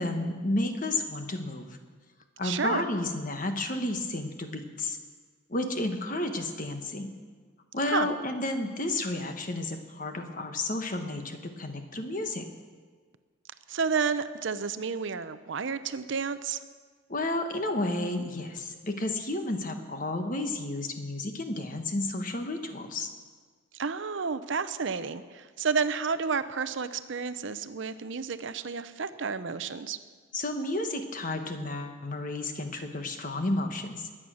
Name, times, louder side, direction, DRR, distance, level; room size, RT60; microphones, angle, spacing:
voice 1, 0.0-1.7 2.4-5.0 5.5-7.1 7.7-12.5 17.1-23.1 30.3-34.0, left 2 dB, 40° left, 6 dB, 1.2 m, -31 dB
voice 2, 2.4-2.9 7.9-8.1 13.7-16.6 23.7-30.0, right 5 dB, 65° right, 13 dB, 0.6 m, -31 dB
21.0 x 8.8 x 6.3 m, 1.5 s
head